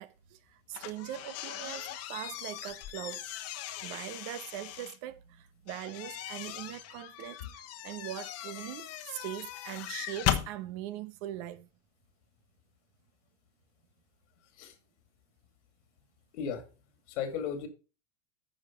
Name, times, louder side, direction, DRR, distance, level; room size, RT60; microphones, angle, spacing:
voice 1, 0.0-3.2 3.8-11.7, right 13 dB, 60° right, 1.1 m, -41 dB
sound 1, 0.7-5.0 5.7-10.5, left 12 dB, 45° left, 1.1 m, -38 dB
voice 2, 16.3-16.7 17.1-17.7, left 7 dB, 80° left, 2.3 m, -35 dB
9.6 x 5.1 x 5.2 m
supercardioid pair, 120°, 35 cm